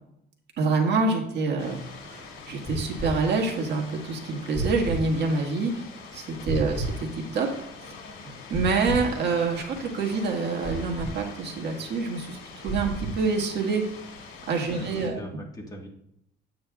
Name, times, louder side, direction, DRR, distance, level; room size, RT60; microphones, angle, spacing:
voice 1, 0.6-5.8 6.1-6.8 7.2-7.5 7.8-7.9 8.2-13.8 14.5-15.2, right 4 dB, 55° right, 0 dB, 1.7 m, -27 dB
sound 1, 1.6-15.1, left 4 dB, 80° left, 1.9 m, -44 dB
sound 2, 2.6-3.1 4.5-5.0 6.5-7.0 8.5-9.1 10.6-11.1 12.7-13.2, right 2 dB, 5° right, 2.4 m, -31 dB
voice 2, 14.6-15.9, equal, 15° left, 0 dB, 1.5 m, -41 dB
9.2 x 8.2 x 2.3 m, 0.77 s
cardioid pair, 130°, 21 cm